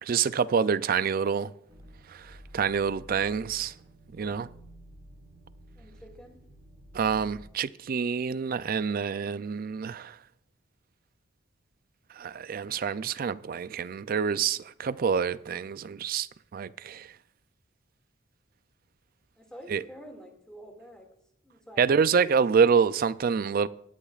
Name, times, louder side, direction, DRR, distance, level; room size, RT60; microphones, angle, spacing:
voice 1, 0.0-1.5 2.1-3.7 4.1-4.5 6.9-10.2 12.1-17.1 19.7-19.8 21.8-23.7, right 6 dB, 45° right, 0.4 m, -27 dB
sound 1, 1.7-7.5, equal, 20° right, 5.6 m, -51 dB
voice 2, 5.7-6.4 19.4-21.1 21.4-22.4, equal, 5° left, 2.1 m, -48 dB
21.5 x 10.0 x 2.4 m
head